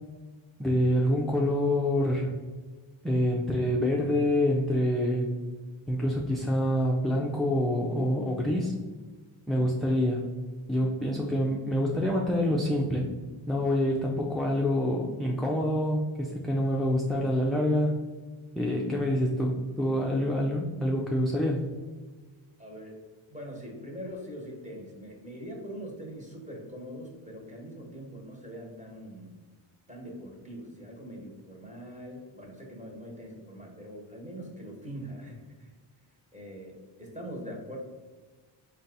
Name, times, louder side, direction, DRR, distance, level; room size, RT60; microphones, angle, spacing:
voice 1, 0.6-2.4 3.0-5.3 5.9-8.7 9.5-10.3 10.7-13.1 13.5-18.0 18.6-21.6, equal, ahead, -2 dB, 0.4 m, -26 dB
voice 2, 22.6-23.0 23.3-29.3 29.9-35.7 36.3-37.8, equal, 15° right, -1 dB, 1.2 m, -42 dB
4.0 x 2.3 x 3.8 m, 1.3 s
cardioid pair, 75°, 49 cm